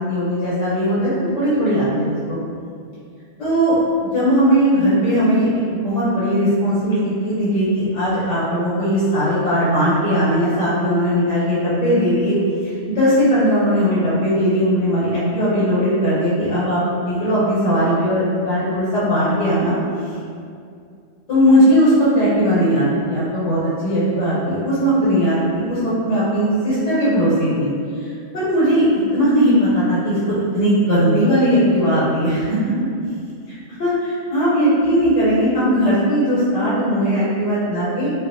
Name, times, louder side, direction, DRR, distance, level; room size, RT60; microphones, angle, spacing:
voice 1, 0.1-2.4 3.4-3.8 4.1-5.5 5.8-12.4 12.6-19.7 21.3-27.7 28.0-28.1 28.3-32.7 33.7-38.1, equal, 80° left, -10 dB, 1.0 m, -18 dB
2.4 x 2.3 x 2.5 m, 2.4 s
omnidirectional pair, 1.2 m